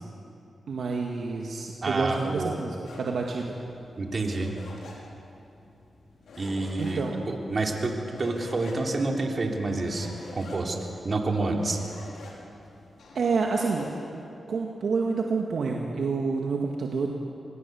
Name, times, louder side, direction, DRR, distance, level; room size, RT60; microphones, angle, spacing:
voice 1, 0.7-3.6 6.8-7.2 13.1-13.9 14.1-14.2 14.5-17.1, right 4 dB, 75° right, 0 dB, 2.0 m, -28 dB
voice 2, 1.8-2.6 4.0-4.5 6.4-10.8 11.0-11.8, right 2 dB, 50° right, 1 dB, 3.6 m, -28 dB
sound 1, 2.8-13.9, left 2 dB, 85° left, 4.7 m, -47 dB
26.5 x 20.5 x 7.1 m, 2.8 s
cardioid pair, 55°, 0 cm